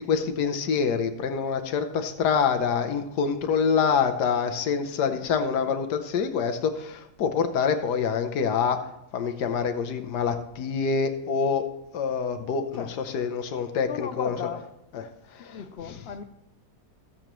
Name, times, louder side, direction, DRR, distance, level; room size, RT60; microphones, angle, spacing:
voice 1, 0.0-8.8 9.1-12.8 13.1-14.4 14.9-15.0 15.3-15.6, left 6 dB, 90° left, 6 dB, 1.5 m, -26 dB
voice 2, 12.7-13.2 13.9-14.6 15.4-16.2, left 8 dB, 65° left, 8 dB, 0.6 m, -36 dB
20.0 x 7.5 x 3.1 m, 0.83 s
omnidirectional pair, 1.7 m